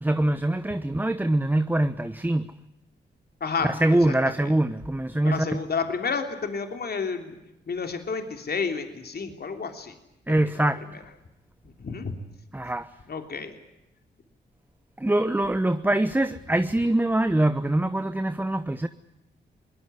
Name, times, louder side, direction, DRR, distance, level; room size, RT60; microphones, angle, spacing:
voice 1, 0.0-2.6 3.7-5.6 10.3-10.9 12.5-12.9 15.0-18.9, right 1 dB, 10° right, 1.0 m, -24 dB
voice 2, 3.4-4.1 4.4-4.5 5.2-7.4 7.7-10.0 10.3-11.0 11.6-12.1 13.1-13.6, left 5 dB, 55° left, 3.2 m, -31 dB
22.5 x 19.5 x 9.8 m
cardioid pair, 75°, 19 cm